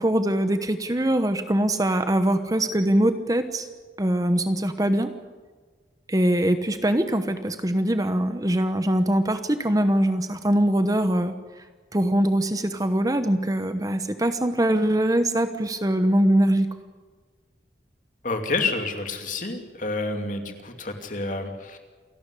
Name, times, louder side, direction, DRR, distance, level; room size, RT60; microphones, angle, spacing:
voice 1, 0.0-3.7 4.0-5.1 6.1-11.3 11.9-16.7, right 1 dB, 20° right, 9 dB, 1.0 m, -22 dB
voice 2, 18.2-21.8, left 3 dB, 45° left, 5 dB, 2.6 m, -29 dB
28.0 x 12.5 x 10.0 m, 1.4 s
head